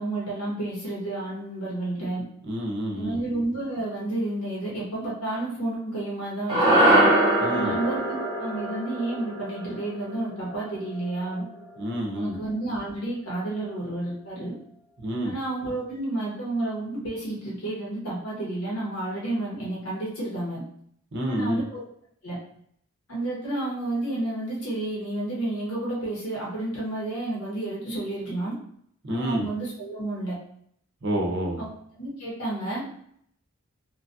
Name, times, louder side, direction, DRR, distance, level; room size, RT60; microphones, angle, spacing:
voice 1, 0.0-2.2 2.9-7.1 7.5-11.4 12.1-14.5 15.2-20.6 21.3-21.6 22.2-22.4 23.1-28.5 29.1-30.4 31.6-31.7 32.0-32.8, right 2 dB, 80° left, -5 dB, 1.3 m, -31 dB
voice 2, 2.4-3.2 7.4-7.8 11.8-12.4 15.0-15.3 21.1-21.6 29.0-29.5 31.0-31.6, equal, 55° right, 0 dB, 0.6 m, -28 dB
sound 1, 6.5-10.9, right 1 dB, 20° right, 0.9 m, -23 dB
3.0 x 2.2 x 2.6 m, 0.67 s
head